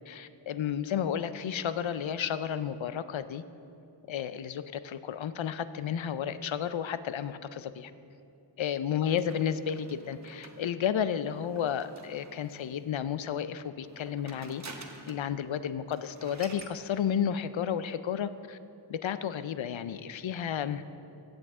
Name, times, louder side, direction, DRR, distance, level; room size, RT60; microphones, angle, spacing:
voice 1, 0.1-3.4 4.1-7.9 8.6-14.6 15.1-18.6 18.9-20.8, left 8 dB, 75° left, 13 dB, 0.5 m, -32 dB
sound 1, 9.2-12.8 13.8-15.3 15.6-15.7 15.9-16.8, right 3 dB, 35° right, 0.9 m, -49 dB
15.5 x 7.8 x 3.6 m, 2.7 s
wide cardioid pair, 65°, 47 cm